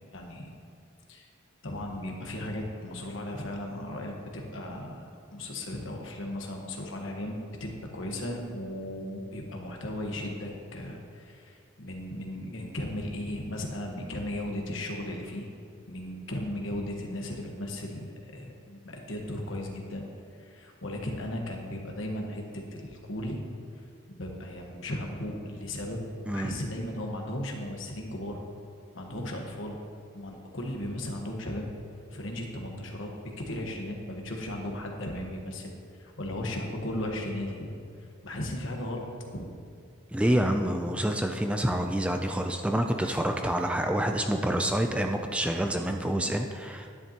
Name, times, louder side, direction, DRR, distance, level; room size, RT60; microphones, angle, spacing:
voice 1, 0.1-0.5 1.1-1.3 1.6-5.0 5.3-15.5 15.9-20.1 20.4-22.4 22.7-23.4 24.1-26.0 26.3-28.4 28.9-29.8 30.1-31.7 32.1-33.1 33.4-35.7 36.0-37.7 38.2-39.1 39.3-39.4, left 1 dB, 65° left, 1 dB, 1.3 m, -36 dB
voice 2, 40.1-46.9, right 1 dB, 5° right, 4 dB, 0.3 m, -27 dB
10.5 x 10.0 x 2.9 m, 2.4 s
head